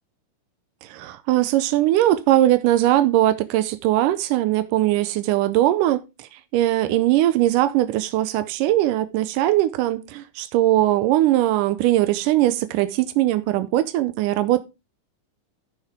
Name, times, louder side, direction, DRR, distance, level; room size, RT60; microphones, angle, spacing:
voice 1, 0.8-14.6, right 14 dB, 90° right, 2.3 m, -20 dB
15.0 x 5.8 x 3.6 m
omnidirectional pair, 3.7 m